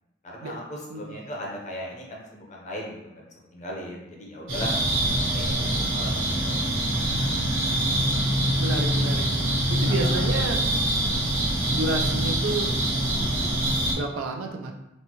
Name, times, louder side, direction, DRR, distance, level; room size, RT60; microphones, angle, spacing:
voice 1, 0.2-4.7 5.3-6.6 9.9-10.3, left 1 dB, 35° left, -2 dB, 0.7 m, -38 dB
sound 1, 4.5-13.9, right 1 dB, 70° right, 1.0 m, -24 dB
voice 2, 6.9-9.3 9.7-10.6 11.7-12.7 13.9-14.7, right 3 dB, 90° right, 3 dB, 0.4 m, -31 dB
4.1 x 2.2 x 2.9 m, 0.93 s
head